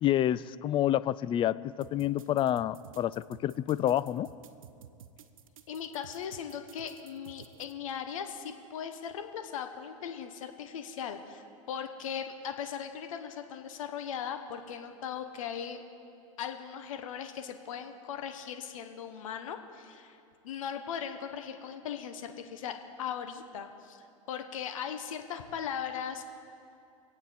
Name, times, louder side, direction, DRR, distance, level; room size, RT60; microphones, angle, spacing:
voice 1, 0.0-4.3, left 12 dB, 30° left, 17 dB, 0.4 m, -28 dB
sound 1, 1.8-7.7, right 9 dB, 85° right, 0.7 m, -53 dB
voice 2, 5.7-15.8 16.4-20.2 20.4-26.3, left 8 dB, 75° left, 6 dB, 1.1 m, -38 dB
24.0 x 8.6 x 4.2 m, 2.5 s
hypercardioid pair, 100°, 17 cm